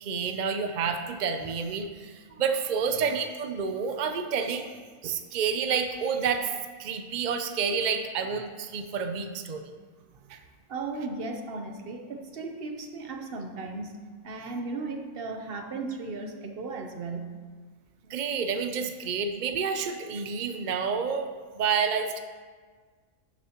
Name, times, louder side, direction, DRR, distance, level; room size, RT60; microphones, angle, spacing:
voice 1, 0.0-4.7 5.0-6.5 6.8-9.6 10.3-10.4 18.1-22.2, right 6 dB, 80° right, 6 dB, 0.4 m, -29 dB
voice 2, 10.7-17.3, right 3 dB, 45° right, 4 dB, 0.9 m, -36 dB
12.0 x 7.1 x 3.0 m, 1.5 s
omnidirectional pair, 1.5 m